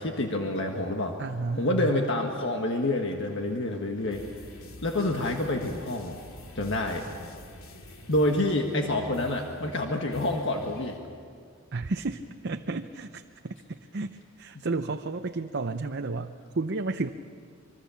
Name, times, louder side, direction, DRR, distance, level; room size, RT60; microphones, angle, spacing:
voice 1, 0.0-1.2 1.6-4.2 4.8-6.2 6.5-7.1 8.1-10.9, left 1 dB, 60° left, 2 dB, 1.7 m, -27 dB
voice 2, 1.2-2.0 11.7-17.1, right 3 dB, 55° right, 6 dB, 0.7 m, -32 dB
sound 1, 4.0-11.0, left 1 dB, 80° left, 2.7 m, -47 dB
25.0 x 23.5 x 7.1 m, 2.2 s
head